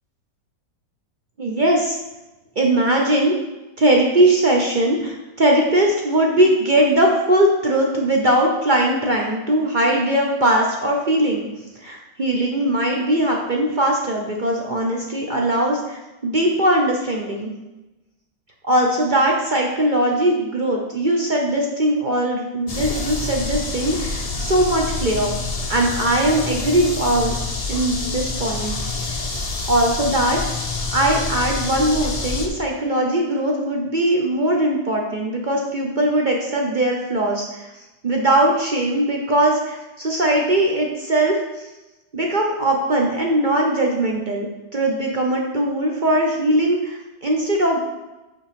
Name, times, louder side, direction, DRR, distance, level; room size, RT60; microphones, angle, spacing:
voice 1, 1.4-2.0 2.6-3.4 3.8-11.5 11.8-17.5 18.6-25.3 25.7-27.4 27.7-28.7 29.0-29.2 29.7-30.4 30.9-37.7 38.0-41.7 42.1-47.8, right 1 dB, 55° right, 0 dB, 0.5 m, -20 dB
sound 1, 22.7-32.5, left 3 dB, 60° left, 0.3 m, -27 dB
5.8 x 5.1 x 5.1 m, 1.0 s
omnidirectional pair, 1.9 m